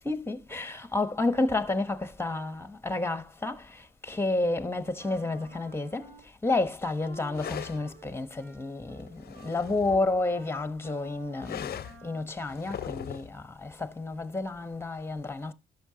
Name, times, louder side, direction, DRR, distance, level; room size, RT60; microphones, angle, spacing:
voice 1, 0.0-6.1 6.4-15.5, left 2 dB, 10° left, 1.0 m, -30 dB
Wind instrument woodwind instrument, 5.0-6.6 7.0-12.3, right 2 dB, 85° right, 2.5 m, -52 dB
sound 1, 7.3-7.8 9.0-10.2 11.4-12.0 12.5-13.3, left 9 dB, 50° left, 0.5 m, -39 dB
12.0 x 6.5 x 2.8 m
supercardioid pair, 65°, 20 cm